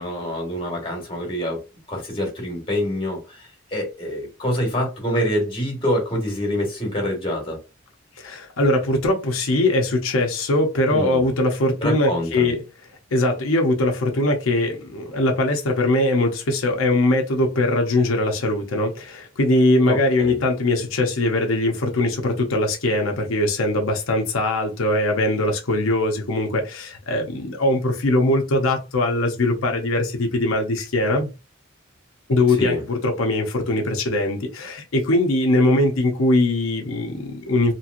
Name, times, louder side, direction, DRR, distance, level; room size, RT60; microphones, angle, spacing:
voice 1, 0.0-1.6 1.9-7.6 10.9-11.3 11.8-12.5 19.8-20.4 32.5-32.8, equal, 25° left, 1.4 m, -26 dB
voice 2, 8.2-12.6 13.1-31.3 32.3-37.7, left 1 dB, 85° left, 0.7 m, -21 dB
2.9 x 2.9 x 2.5 m
head